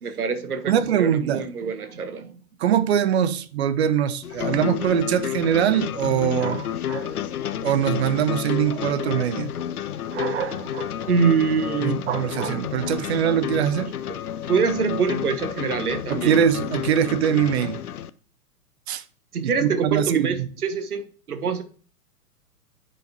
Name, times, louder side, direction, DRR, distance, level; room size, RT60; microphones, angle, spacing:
voice 1, 0.0-2.3 11.1-12.0 14.5-16.4 19.3-21.6, right 5 dB, 70° right, 1.4 m, -25 dB
voice 2, 0.7-1.4 2.6-7.1 7.6-9.5 10.1-11.0 11.8-13.9 16.1-17.8 18.9-19.0 19.4-20.4, right 9 dB, 45° right, 0.8 m, -23 dB
sound 1, 4.2-18.1, left 10 dB, 75° left, 0.6 m, -30 dB
10.5 x 5.3 x 2.6 m
figure-of-eight pair, 115°, 46 cm